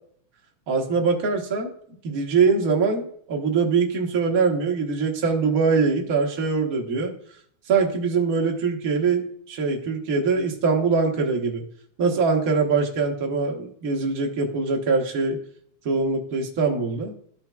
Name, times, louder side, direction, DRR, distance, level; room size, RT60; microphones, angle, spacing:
voice 1, 0.7-1.7 2.0-7.1 7.7-11.6 12.0-15.4 15.8-17.1, right 4 dB, 60° right, 0 dB, 0.9 m, -23 dB
13.5 x 5.7 x 2.3 m, 0.62 s
omnidirectional pair, 3.4 m